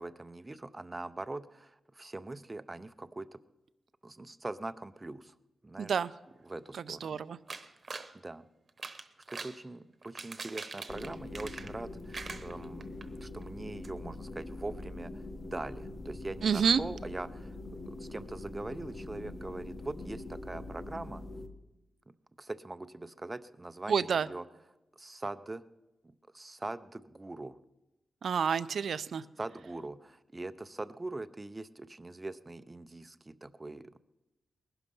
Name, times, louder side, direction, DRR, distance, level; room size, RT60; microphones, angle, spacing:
voice 1, 0.0-3.4 4.0-5.3 5.6-5.9 6.4-7.2 7.6-7.8 8.1-8.4 8.9-9.0 9.3-17.5 17.9-21.2 22.4-24.4 25.0-25.6 26.0-27.6 29.4-34.0, right 2 dB, 15° right, 13 dB, 0.5 m, -42 dB
voice 2, 5.8-6.1 6.7-7.4 16.4-16.8 23.9-24.3 28.2-29.2, right 6 dB, 65° right, 15 dB, 0.5 m, -29 dB
sound 1, 7.5-8.1 8.7-9.6 10.0-11.8 12.1-13.0 13.4-13.5 13.8-13.9, right 4 dB, 35° right, 1.0 m, -43 dB
sound 2, 10.9-21.5, left 2 dB, 40° left, 1.2 m, -43 dB
20.5 x 11.5 x 5.4 m, 0.99 s
wide cardioid pair, 170°, 0 cm